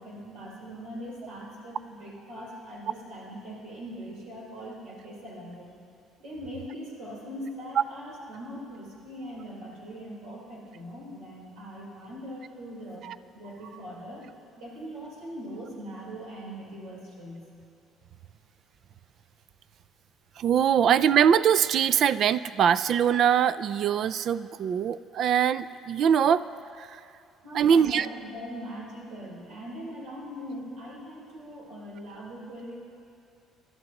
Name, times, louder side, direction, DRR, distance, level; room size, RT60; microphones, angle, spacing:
voice 1, 0.0-5.7 6.2-13.0 13.3-14.3 14.6-17.5 27.4-32.8, equal, 75° right, -5 dB, 4.0 m, -41 dB
voice 2, 20.4-26.4 26.8-26.9 27.5-28.1, right 8 dB, 50° right, 16 dB, 0.3 m, -22 dB
27.5 x 12.5 x 3.0 m, 2.5 s
cardioid pair, 145°, 0 cm